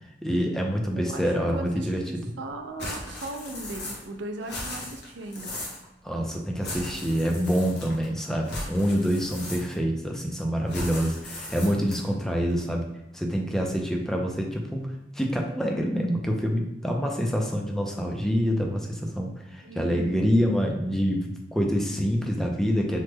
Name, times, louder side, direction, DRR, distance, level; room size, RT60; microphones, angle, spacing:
voice 1, 0.2-2.3 6.0-12.8 13.1-23.0, equal, 5° left, 0 dB, 0.3 m, -26 dB
voice 2, 1.0-5.5 19.6-20.2, right 2 dB, 85° right, 5 dB, 0.4 m, -38 dB
sound 1, 2.8-4.1 4.4-5.8 6.6-8.1 8.4-9.9 10.7-12.1, left 1 dB, 70° left, 0.8 m, -37 dB
3.1 x 2.1 x 3.2 m, 0.92 s
head